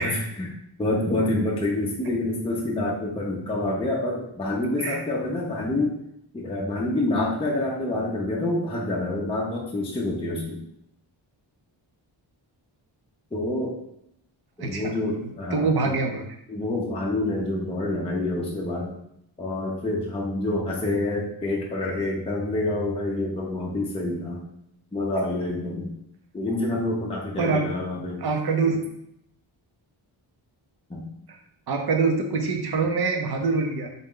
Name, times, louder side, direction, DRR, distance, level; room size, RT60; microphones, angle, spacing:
voice 1, 0.0-6.0 6.3-10.6 13.3-13.8 14.6-16.0 16.5-18.9 19.4-24.4 24.9-25.9 26.3-28.3 30.9-31.1, left 2 dB, 15° left, -3 dB, 0.5 m, -27 dB
voice 2, 14.6-14.9 15.5-16.2 27.4-27.7 28.2-28.8 31.7-33.9, right 4 dB, 55° right, 3 dB, 0.7 m, -24 dB
3.9 x 2.2 x 3.6 m, 0.75 s
wide cardioid pair, 135°, 47 cm